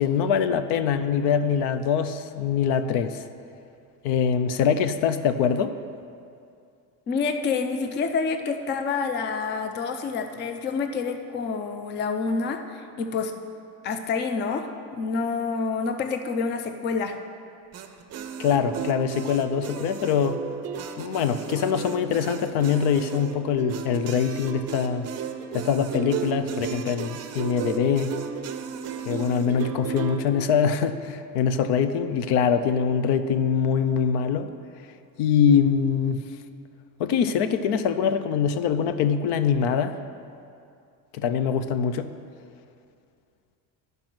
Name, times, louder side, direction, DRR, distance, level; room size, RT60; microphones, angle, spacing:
voice 1, 0.0-3.2 4.0-5.8 18.4-20.4 21.0-25.1 25.5-28.1 29.1-34.5 35.2-36.2 37.0-40.0 41.1-42.1, left 7 dB, 75° left, 10 dB, 0.6 m, -23 dB
voice 2, 7.1-13.3 13.8-14.7 14.9-17.1, left 5 dB, 25° left, 7 dB, 0.4 m, -28 dB
sound 1, 17.7-30.2, right 7 dB, 35° right, 0.6 m, -34 dB
10.5 x 5.4 x 6.0 m, 2.5 s
cardioid pair, 150°, 42 cm